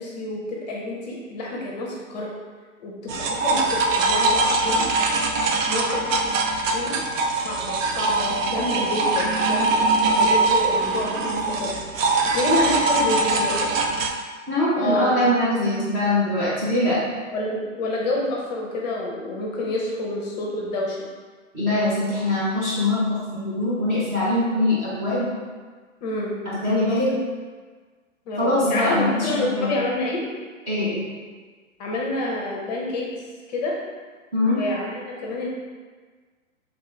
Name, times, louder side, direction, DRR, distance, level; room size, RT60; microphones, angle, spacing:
voice 1, 0.0-2.3 2.8-4.9 5.7-6.3 6.6-7.0 7.4-9.8 10.2-11.7 12.2-13.8 14.8-15.1 17.3-21.0 26.0-26.4 28.3-30.2 31.8-33.1 33.5-33.8 34.4-35.5, left 2 dB, 35° left, -2 dB, 0.5 m, -28 dB
sound 1, 3.1-14.1, right 3 dB, 75° right, 0.5 m, -22 dB
voice 2, 14.5-17.0 21.5-25.3 26.5-27.1 28.4-29.7 30.7-31.1 34.3-34.6, left 1 dB, 20° right, -11 dB, 0.4 m, -22 dB
3.1 x 2.4 x 3.1 m, 1.5 s
hypercardioid pair, 135°, 39 cm